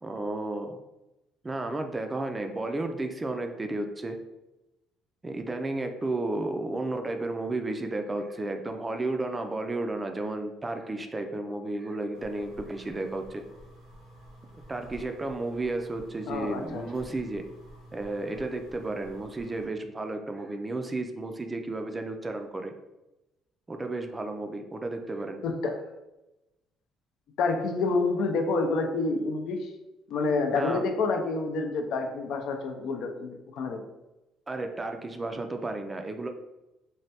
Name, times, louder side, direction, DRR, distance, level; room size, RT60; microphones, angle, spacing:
voice 1, 0.0-0.8 1.4-4.2 5.2-13.4 14.7-17.4 17.9-22.7 23.7-25.4 30.5-30.8 34.5-36.3, right 2 dB, 20° right, 5 dB, 0.3 m, -33 dB
sound 1, 12.1-19.7, equal, 90° right, 0.7 m, -50 dB
voice 2, 16.3-16.8 25.4-25.8 27.4-29.7 30.1-33.8, left 3 dB, 70° left, 4 dB, 0.4 m, -28 dB
3.1 x 2.2 x 2.8 m, 0.98 s
cardioid pair, 95°, 0 cm